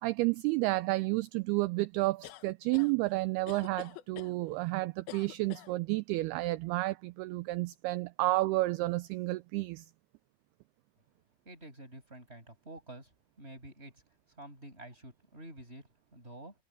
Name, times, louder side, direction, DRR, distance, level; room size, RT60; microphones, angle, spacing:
voice 1, 0.0-9.9, right 20 dB, 80° right, 2.4 m, -31 dB
sound 1, 2.2-2.9 3.5-4.3 5.1-5.7, left 13 dB, 70° left, 2.6 m, -46 dB
voice 2, 11.4-13.1 13.4-14.0 14.3-16.5, right 1 dB, 15° right, 7.9 m, -49 dB
omnidirectional pair, 4.9 m